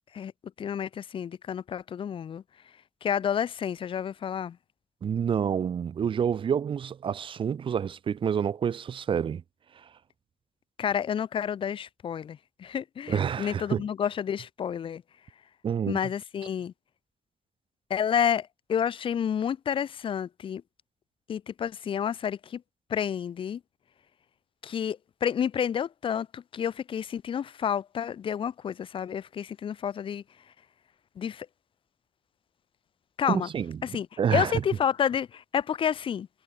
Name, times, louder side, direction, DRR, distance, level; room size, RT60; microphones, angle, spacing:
voice 1, 0.6-2.4 3.0-4.6 10.8-15.0 15.9-16.7 17.9-20.6 21.3-22.6 22.9-23.6 24.6-30.2 31.2-31.5 33.2-33.5 33.8-36.3, left 8 dB, 70° left, 1.0 m, -30 dB
voice 2, 5.0-9.4 13.1-13.8 15.6-16.0 33.3-33.8 34.2-34.5, right 7 dB, 70° right, 2.2 m, -28 dB
wide cardioid pair, 180°, 9 cm